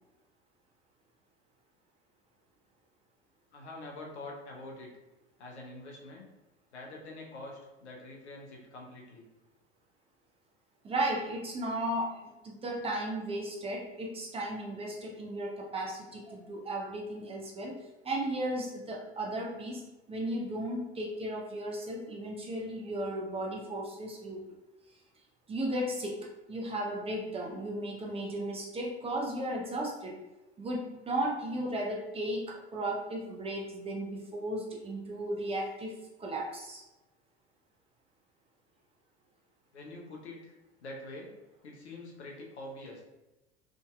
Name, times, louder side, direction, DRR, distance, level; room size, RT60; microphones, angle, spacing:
voice 1, 3.5-4.9 5.4-6.3 6.7-9.3 39.7-40.6 40.8-41.3 41.6-43.0, left 2 dB, 80° left, -1 dB, 0.8 m, -45 dB
voice 2, 10.8-17.8 18.0-19.8 20.1-24.5 25.5-26.2 26.5-30.2 30.6-36.8, right 1 dB, 20° right, -1 dB, 0.5 m, -35 dB
3.6 x 2.6 x 2.2 m, 1.0 s
figure-of-eight pair, 80°, 33 cm